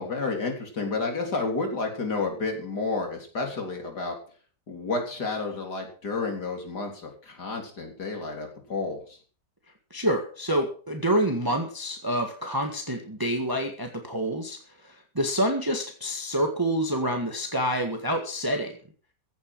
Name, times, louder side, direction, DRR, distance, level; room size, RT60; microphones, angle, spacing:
voice 1, 0.0-4.2 4.7-9.2, left 3 dB, 70° left, 3 dB, 4.2 m, -31 dB
voice 2, 9.9-18.7, right 1 dB, 15° right, 3 dB, 1.7 m, -27 dB
16.0 x 9.2 x 6.2 m, 0.42 s
omnidirectional pair, 1.8 m